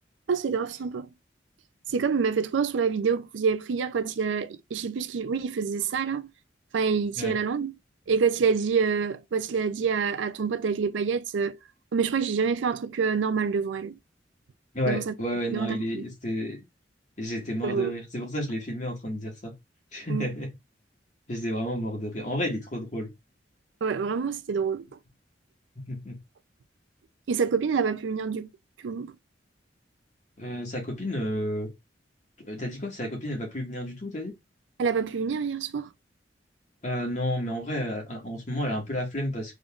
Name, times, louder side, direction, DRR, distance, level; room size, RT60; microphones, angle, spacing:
voice 1, 0.3-1.1 1.9-6.3 6.7-7.7 8.1-11.6 11.9-14.0 14.9-15.1 15.5-16.1 17.6-17.9 20.1-20.3 23.8-24.8 27.3-28.5 28.8-29.1 34.8-35.9, right 5 dB, 85° right, 0.4 m, -27 dB
voice 2, 14.7-16.6 17.2-19.5 19.9-20.5 21.3-23.1 25.8-26.2 30.4-31.7 32.4-34.3 36.8-39.5, equal, 40° left, 1.6 m, -31 dB
3.7 x 3.7 x 2.4 m
head